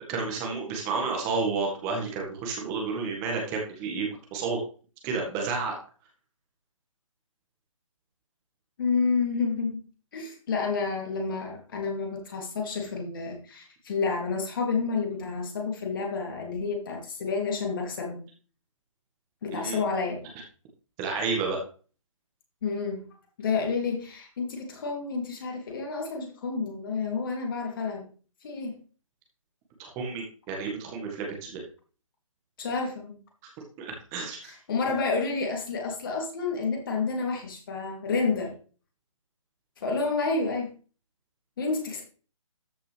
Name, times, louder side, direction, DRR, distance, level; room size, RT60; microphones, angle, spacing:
voice 1, 0.1-4.6 5.0-5.8 19.5-19.8 21.0-21.6 29.8-31.6 33.8-34.6, right 4 dB, 20° right, 1 dB, 1.7 m, -31 dB
voice 2, 8.8-9.8 10.1-18.2 19.4-20.3 22.6-23.0 23.4-28.1 28.4-28.8 32.6-33.2 34.4-38.5 39.8-40.7 41.6-42.0, left 4 dB, 40° left, 1 dB, 2.9 m, -29 dB
13.5 x 5.8 x 3.4 m, 0.39 s
figure-of-eight pair, 145°, 17 cm